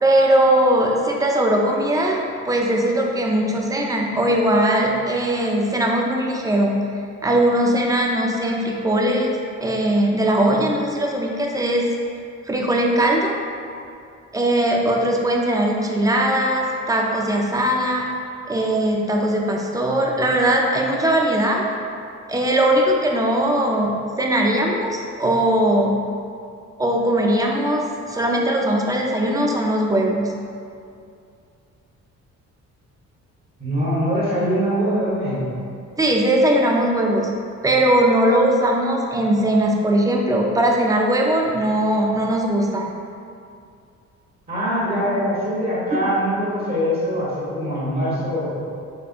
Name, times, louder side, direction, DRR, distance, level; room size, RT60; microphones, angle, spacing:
voice 1, 0.0-2.2 2.5-6.8 7.2-11.9 12.5-13.3 14.3-18.1 18.5-21.6 22.3-25.9 26.8-30.3 36.0-37.3 37.6-42.9 45.9-46.0, right 1 dB, 10° right, -1 dB, 0.4 m, -20 dB
voice 2, 33.6-35.5 44.5-48.5, equal, 30° right, -8 dB, 1.1 m, -23 dB
5.1 x 2.2 x 2.4 m, 2.4 s
cardioid pair, 90°, 30 cm